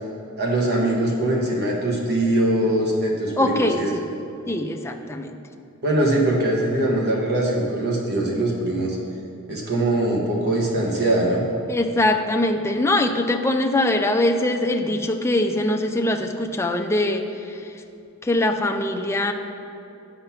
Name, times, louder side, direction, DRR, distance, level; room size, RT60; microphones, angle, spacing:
voice 1, 0.4-3.9 5.8-9.0 9.5-11.4, right 1 dB, 50° right, -2 dB, 1.1 m, -22 dB
voice 2, 3.4-4.0 4.5-5.4 11.7-17.7 18.2-19.3, left 1 dB, 10° left, 4 dB, 0.5 m, -22 dB
9.0 x 5.8 x 5.7 m, 2.8 s
head